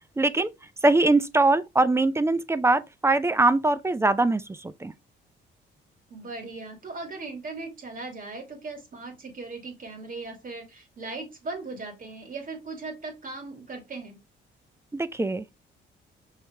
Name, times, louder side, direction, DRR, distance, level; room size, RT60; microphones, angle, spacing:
voice 1, 0.2-0.5 0.8-4.9 14.9-15.6, right 2 dB, 15° right, 0.5 m, -22 dB
voice 2, 6.1-14.2, right 3 dB, 45° right, 2.1 m, -38 dB
5.7 x 2.8 x 3.3 m
cardioid pair, 90°, 20 cm